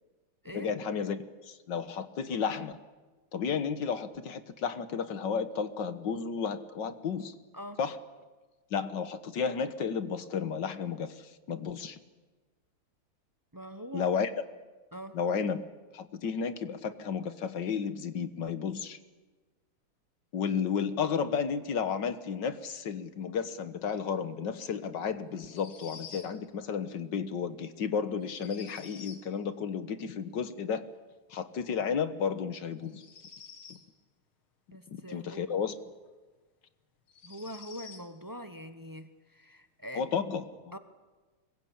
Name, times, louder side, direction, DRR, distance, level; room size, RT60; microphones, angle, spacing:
voice 1, 0.5-2.8 3.3-7.3 7.8-8.0 8.7-12.0 13.9-14.3 15.1-15.7 15.9-19.0 20.3-30.9 31.3-33.0 34.9-35.7 40.0-40.8, left 6 dB, 60° left, 11 dB, 1.9 m, -32 dB
voice 2, 13.5-14.1 14.9-15.2 34.7-35.5 37.2-40.0 40.7-40.8, equal, 25° right, 9 dB, 0.4 m, -43 dB
sound 1, 25.4-26.3 28.2-29.3 32.8-33.9 36.0-36.1 37.1-38.1, left 6 dB, 85° left, 3.0 m, -49 dB
25.0 x 22.0 x 8.8 m, 1.3 s
omnidirectional pair, 2.3 m